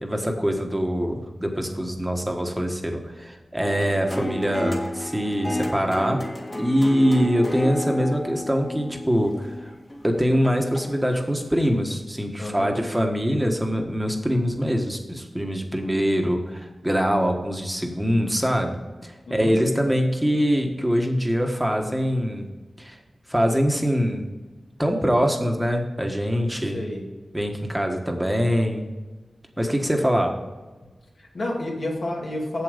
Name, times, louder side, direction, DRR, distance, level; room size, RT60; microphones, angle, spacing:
voice 1, 0.0-6.2 6.6-9.7 10.0-22.5 22.8-23.0 23.3-24.3 24.8-26.8 27.3-28.9 29.6-30.3, equal, 10° right, 3 dB, 1.4 m, -23 dB
sound 1, 3.6-11.1 11.6-11.7, left 1 dB, 30° left, 1.9 m, -32 dB
voice 2, 12.4-12.8 19.3-19.6 26.7-27.0 31.2-32.6, left 1 dB, 65° left, -1 dB, 2.5 m, -30 dB
7.7 x 7.7 x 5.1 m, 1.2 s
wide cardioid pair, 90°, 0 cm